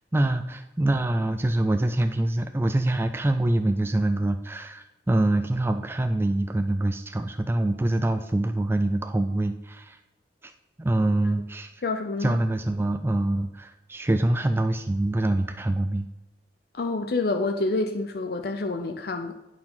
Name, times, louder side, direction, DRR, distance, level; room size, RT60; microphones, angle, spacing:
voice 1, 0.1-10.0 10.4-10.5 10.8-11.7 12.2-16.1, right 1 dB, 15° right, 7 dB, 0.3 m, -25 dB
voice 2, 11.8-12.4 16.7-19.3, left 3 dB, 60° left, 5 dB, 0.5 m, -27 dB
9.6 x 4.7 x 5.5 m, 1.0 s
head